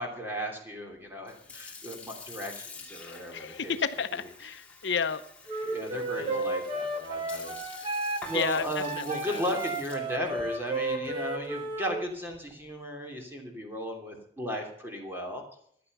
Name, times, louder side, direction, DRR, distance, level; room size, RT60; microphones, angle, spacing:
voice 1, 0.0-3.8 4.2-4.3 5.7-7.9 8.3-15.4, equal, 10° right, 2 dB, 3.0 m, -35 dB
Sink (filling or washing) / Fill (with liquid), 1.1-12.7, left 4 dB, 5° left, 2.3 m, -48 dB
voice 2, 3.3-5.2 6.2-6.5 8.3-8.7 9.0-9.4, left 6 dB, 65° left, 10 dB, 0.7 m, -31 dB
Wind instrument woodwind instrument, 5.5-12.0, right 2 dB, 25° right, 1.8 m, -33 dB
15.0 x 10.5 x 5.5 m, 0.67 s
head